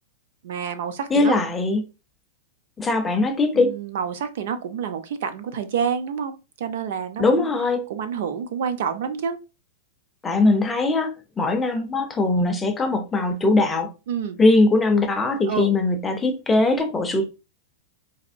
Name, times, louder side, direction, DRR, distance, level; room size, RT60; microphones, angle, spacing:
voice 1, 0.4-1.4 3.5-7.5 7.9-9.4 14.1-14.4 15.5-15.7, right 7 dB, 50° right, 0.5 m, -28 dB
voice 2, 1.1-1.8 2.8-3.7 7.2-7.8 10.2-11.1 11.4-13.9 14.4-17.3, left 2 dB, 10° left, 0.4 m, -20 dB
4.1 x 3.0 x 2.5 m
supercardioid pair, 180°, 0 cm